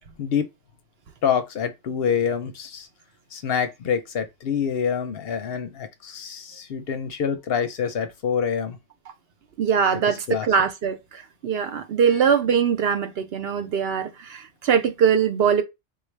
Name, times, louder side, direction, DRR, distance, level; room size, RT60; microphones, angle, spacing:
voice 1, 1.2-2.9 3.3-8.8 10.3-10.5, left 7 dB, 65° left, 0.7 m, -26 dB
voice 2, 9.6-15.6, right 7 dB, 65° right, 0.7 m, -22 dB
3.7 x 2.3 x 3.2 m
omnidirectional pair, 1.2 m